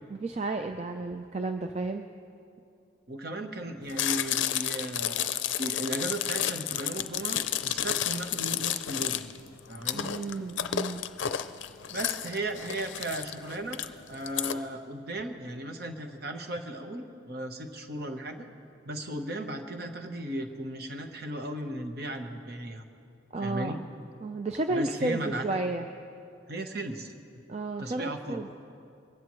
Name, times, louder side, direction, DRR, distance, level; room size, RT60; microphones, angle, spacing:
voice 1, 0.1-2.1 9.9-11.0 23.3-23.9 24.2-25.9 27.5-28.5, right 2 dB, 35° right, 5 dB, 0.4 m, -32 dB
voice 2, 3.1-9.3 9.7-10.1 11.9-13.8 14.1-18.5 18.8-22.8 23.4-23.8 24.7-25.4 26.5-27.1 27.8-28.4, right 1 dB, 50° right, 5 dB, 1.1 m, -36 dB
Chewing mastication, 3.9-14.5, left 10 dB, 75° left, 0.5 m, -31 dB
22.0 x 16.0 x 3.1 m, 2.5 s
head